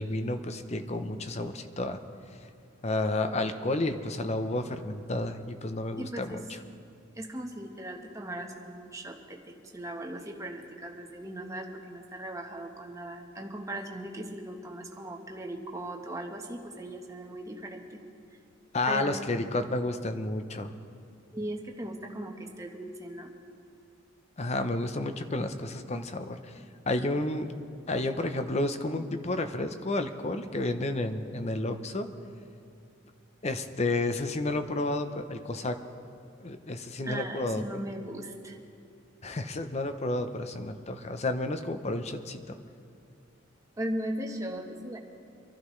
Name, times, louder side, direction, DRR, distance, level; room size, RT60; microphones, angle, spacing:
voice 1, 0.0-2.0 2.8-6.4 18.7-20.7 24.4-26.4 26.9-27.5 27.9-32.1 33.4-35.8 36.4-37.6 39.2-42.6, left 2 dB, 35° left, 9 dB, 0.7 m, -31 dB
voice 2, 6.0-6.4 7.2-18.0 18.9-19.2 21.3-23.3 37.0-38.6 43.8-45.0, right 1 dB, 15° right, 2 dB, 1.1 m, -38 dB
25.0 x 12.0 x 3.2 m, 2.5 s
head